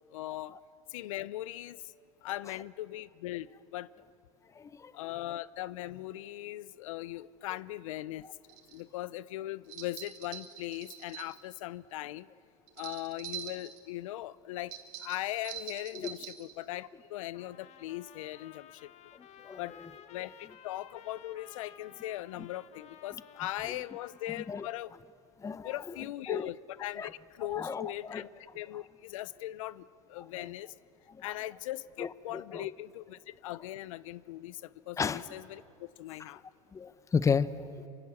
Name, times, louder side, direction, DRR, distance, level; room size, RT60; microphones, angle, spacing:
voice 1, 0.1-0.6 0.9-1.9 2.2-3.9 4.9-8.3 8.7-12.3 12.8-18.9 19.6-19.8 20.0-24.9 25.6-30.7 31.2-36.4, left 15 dB, 80° left, 18 dB, 0.6 m, -39 dB
voice 2, 4.5-4.9 15.9-16.1 19.1-19.6 23.7-23.8 24.4-24.7 25.4-25.9 26.3-26.5 27.0-27.1 27.5-28.2 30.4-30.5 31.1-31.3 32.0-32.7 35.0-35.2 36.7-37.9, left 6 dB, 20° left, 15 dB, 0.8 m, -34 dB
sound 1, 8.5-8.8 9.7-11.3 12.7-13.8 14.7-16.5, right 10 dB, 60° right, 3.4 m, -44 dB
Trumpet, 17.3-24.8, left 9 dB, 45° left, 1.6 m, -55 dB
28.0 x 25.0 x 7.3 m, 2.7 s
supercardioid pair, 110°, 17 cm